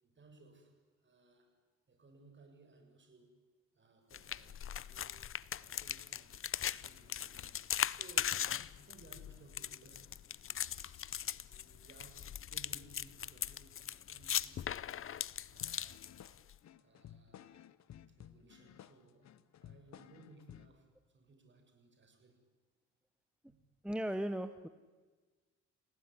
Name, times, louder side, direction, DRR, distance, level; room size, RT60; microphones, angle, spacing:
voice 1, 0.0-1.6 1.9-3.4 3.7-5.2 5.5-10.1 10.4-15.0 15.5-16.1 16.8-17.7 18.1-19.3 19.6-22.4 23.5-23.7, right 2 dB, 40° right, 5 dB, 6.7 m, -62 dB
sound 1, 4.1-16.5, left 9 dB, 45° left, 0.7 m, -39 dB
sound 2, 15.6-20.8, left 10 dB, 65° left, 1.1 m, -56 dB
voice 2, 23.8-24.7, right 1 dB, 5° right, 10 dB, 1.1 m, -36 dB
29.5 x 18.0 x 9.9 m, 1.4 s
cardioid pair, 90°, 30 cm